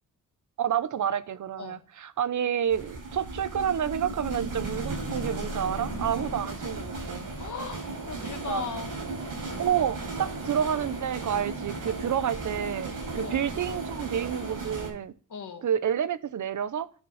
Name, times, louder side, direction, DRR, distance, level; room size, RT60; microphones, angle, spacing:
voice 1, 0.6-7.2 8.2-8.6 9.6-15.1 15.6-16.9, right 9 dB, 65° right, 0.7 m, -29 dB
sound 1, 2.7-14.9, right 2 dB, 85° right, 5.0 m, -35 dB
voice 2, 7.4-8.9 13.2-13.5 15.3-15.7, left 6 dB, 65° left, 2.0 m, -37 dB
10.5 x 5.3 x 5.6 m
wide cardioid pair, 125°, 32 cm